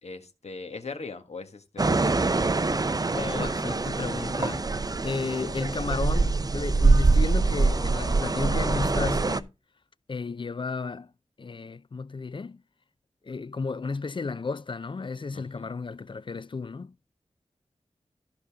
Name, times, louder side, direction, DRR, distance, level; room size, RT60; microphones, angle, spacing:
voice 1, 0.0-2.1 15.3-15.7, left 4 dB, 70° left, 1.5 m, -40 dB
sound 1, 1.8-9.4, right 3 dB, 35° right, 0.6 m, -24 dB
voice 2, 3.1-4.7 5.0-9.5 10.1-11.1 11.4-12.6 13.2-17.0, left 4 dB, 45° left, 0.4 m, -33 dB
14.0 x 5.3 x 3.5 m
wide cardioid pair, 75°, 11 cm